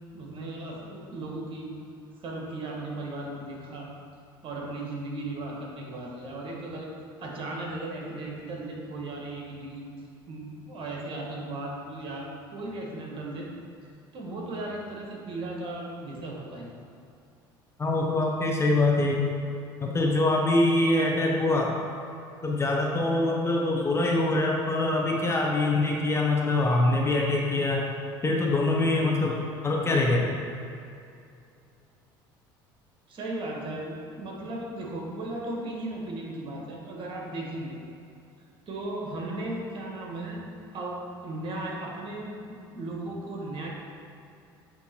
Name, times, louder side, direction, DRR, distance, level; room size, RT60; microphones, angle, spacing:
voice 1, 0.1-1.7 2.2-3.9 4.4-6.9 7.2-9.8 10.3-13.5 14.1-16.7 33.1-37.8 38.7-40.4 40.7-43.7, right 2 dB, 45° right, -2 dB, 1.5 m, -36 dB
voice 2, 17.8-19.2 19.8-21.7 22.4-27.8 28.2-30.3, left 2 dB, 20° left, -1 dB, 0.9 m, -24 dB
8.2 x 2.9 x 4.4 m, 2.6 s
hypercardioid pair, 75°, 12 cm